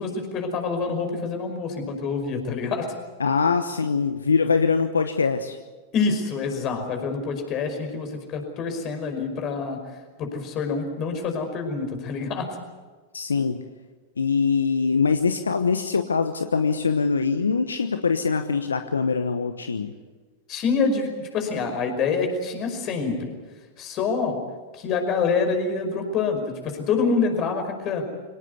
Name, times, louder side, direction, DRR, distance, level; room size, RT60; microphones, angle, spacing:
voice 1, 0.0-2.9 5.9-9.8 10.2-12.5 20.5-23.4 23.8-24.4 24.7-28.0, left 4 dB, 40° left, 5 dB, 5.4 m, -26 dB
voice 2, 3.2-5.6 13.1-13.6 14.2-19.9, left 5 dB, 85° left, 9 dB, 1.0 m, -23 dB
24.0 x 18.5 x 8.3 m, 1.3 s
hypercardioid pair, 100°, 0 cm